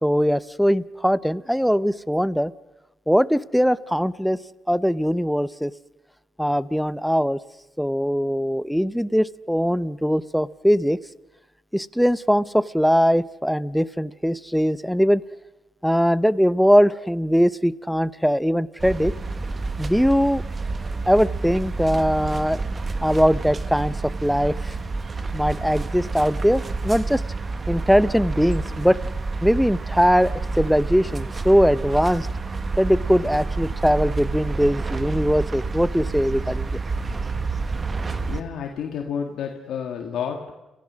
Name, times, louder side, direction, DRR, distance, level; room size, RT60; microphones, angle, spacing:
voice 1, 0.0-2.5 3.1-4.4 4.7-5.7 6.4-7.4 7.8-11.0 11.7-15.2 15.8-19.1 19.8-20.4 21.1-22.6 23.0-24.7 25.3-27.2 27.7-29.0 29.4-32.3 32.8-36.8, equal, ahead, 17 dB, 0.7 m, -21 dB
sound 1, 18.8-38.4, right 3 dB, 30° right, 1.4 m, -29 dB
voice 2, 38.2-40.5, left 7 dB, 75° left, 2 dB, 1.9 m, -30 dB
29.5 x 16.0 x 6.3 m, 1.0 s
cardioid pair, 90°, 0 cm